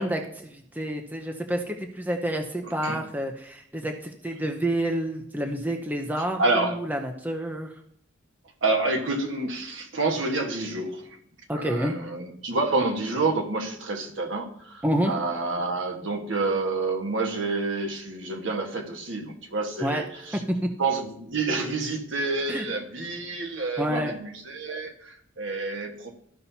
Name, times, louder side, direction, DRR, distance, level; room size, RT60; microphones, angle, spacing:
voice 1, 0.0-7.7 11.5-11.9 14.8-15.1 19.8-20.0 20.3-20.7 22.5-22.6 23.8-24.1, right 1 dB, 10° right, 4 dB, 0.6 m, -28 dB
voice 2, 6.1-6.8 8.6-11.1 11.5-20.4 20.8-26.1, right 3 dB, 75° right, 2 dB, 1.4 m, -28 dB
13.5 x 5.6 x 2.8 m, 0.67 s
head